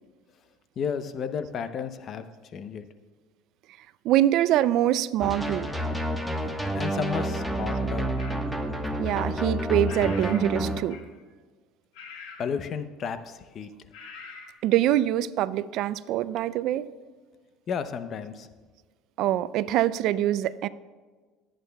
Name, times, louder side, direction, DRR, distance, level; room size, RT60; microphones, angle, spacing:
voice 1, 0.8-2.3 2.5-2.9 6.7-8.1 12.4-13.7 17.7-18.5, left 6 dB, 50° left, 11 dB, 0.7 m, -32 dB
voice 2, 4.0-5.7 9.0-11.0 14.6-16.9 19.2-20.7, right 12 dB, 65° right, 16 dB, 0.4 m, -24 dB
sound 1, 5.2-10.8, right 1 dB, 5° left, 1.2 m, -29 dB
sound 2, 8.2-8.4 9.9-10.5 10.9-11.2 11.9-12.5 13.9-14.5, left 5 dB, 85° left, 1.4 m, -43 dB
20.0 x 8.9 x 2.3 m, 1.4 s
supercardioid pair, 90°, 0 cm